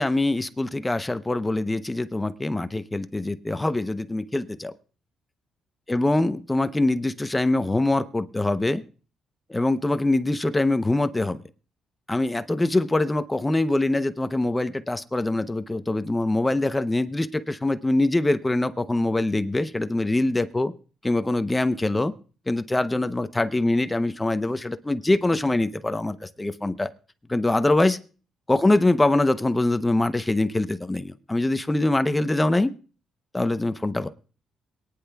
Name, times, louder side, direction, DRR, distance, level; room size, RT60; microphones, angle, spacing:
voice 1, 0.0-4.7 5.9-8.8 9.5-11.4 12.1-20.7 21.0-22.1 22.5-26.9 27.3-28.0 28.5-32.7 33.3-34.1, left 2 dB, 15° left, 0.7 m, -23 dB
22.5 x 10.0 x 2.3 m
cardioid pair, 90°, 0 cm